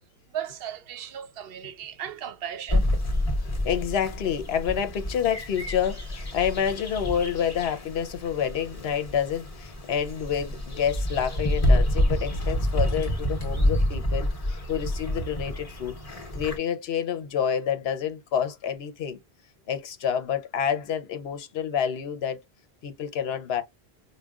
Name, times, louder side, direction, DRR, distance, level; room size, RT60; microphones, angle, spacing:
voice 1, 0.3-2.9, right 9 dB, 70° right, 0.8 m, -36 dB
sound 1, 2.7-16.6, left 1 dB, 35° left, 1.1 m, -28 dB
voice 2, 3.6-19.2 19.7-22.4 22.8-23.6, left 8 dB, 75° left, 1.0 m, -28 dB
4.9 x 2.2 x 2.3 m
omnidirectional pair, 1.1 m